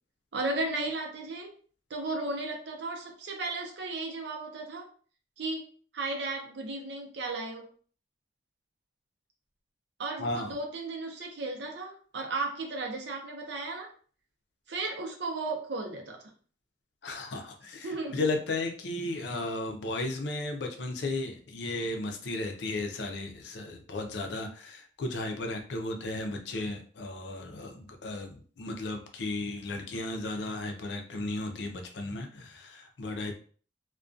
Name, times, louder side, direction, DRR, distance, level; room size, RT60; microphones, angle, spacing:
voice 1, 0.3-1.5 1.9-4.9 5.4-5.6 5.9-7.7 10.0-13.9 14.7-16.2 17.8-18.2, right 2 dB, 70° right, 2 dB, 0.6 m, -35 dB
voice 2, 10.2-10.5 17.0-33.3, left 2 dB, 70° left, 4 dB, 0.5 m, -35 dB
2.3 x 2.2 x 2.5 m, 0.43 s
head